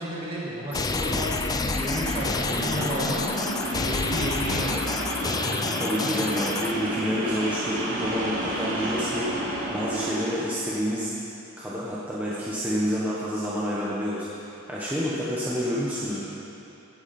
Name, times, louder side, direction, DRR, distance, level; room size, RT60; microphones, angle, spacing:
voice 1, 0.0-4.8, right 1 dB, 25° right, -7 dB, 2.2 m, -32 dB
sound 1, 0.7-6.7, left 3 dB, 20° left, 0.3 m, -28 dB
sound 2, 1.6-10.4, right 1 dB, 65° right, 2.8 m, -31 dB
voice 2, 5.8-9.3 9.7-11.2 11.6-16.2, equal, 10° right, -8 dB, 1.2 m, -28 dB
16.0 x 8.7 x 4.4 m, 2.9 s
head